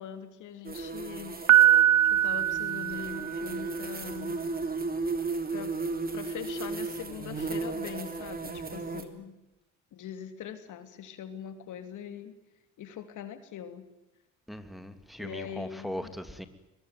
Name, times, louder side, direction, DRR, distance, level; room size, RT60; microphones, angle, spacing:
voice 1, 0.0-1.7 2.0-4.4 5.5-5.7 6.1-9.3 9.9-12.4 12.8-13.8 15.2-16.1, left 9 dB, 80° left, 10 dB, 3.1 m, -42 dB
sound 1, 0.6-9.0, right 3 dB, 30° right, 3.5 m, -35 dB
Piano, 1.5-3.6, right 11 dB, 75° right, 0.8 m, -22 dB
voice 2, 14.5-16.5, equal, ahead, 9 dB, 2.7 m, -39 dB
23.5 x 20.5 x 9.4 m, 0.94 s
cardioid pair, 90°, 30 cm